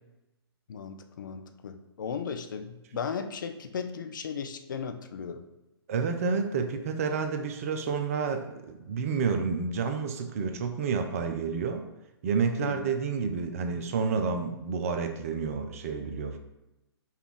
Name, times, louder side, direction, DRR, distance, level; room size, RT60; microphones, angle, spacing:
voice 1, 0.7-5.4 12.6-12.9, left 6 dB, 50° left, 7 dB, 0.4 m, -36 dB
voice 2, 5.9-11.8 12.2-16.4, right 5 dB, 35° right, 7 dB, 0.4 m, -29 dB
5.5 x 2.3 x 3.4 m, 0.96 s
figure-of-eight pair, 125°, 13 cm